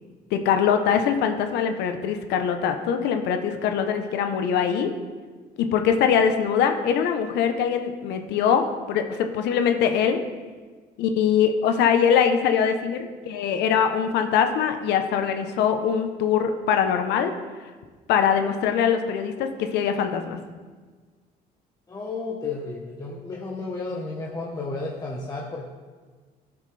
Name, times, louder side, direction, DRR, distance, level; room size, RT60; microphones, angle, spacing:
voice 1, 0.3-4.9 5.6-10.2 11.0-17.3 18.1-20.4, left 7 dB, 85° left, 6 dB, 0.8 m, -22 dB
voice 2, 21.9-25.7, left 3 dB, 20° left, -3 dB, 1.1 m, -32 dB
12.5 x 7.1 x 3.4 m, 1.4 s
cardioid pair, 110°, 17 cm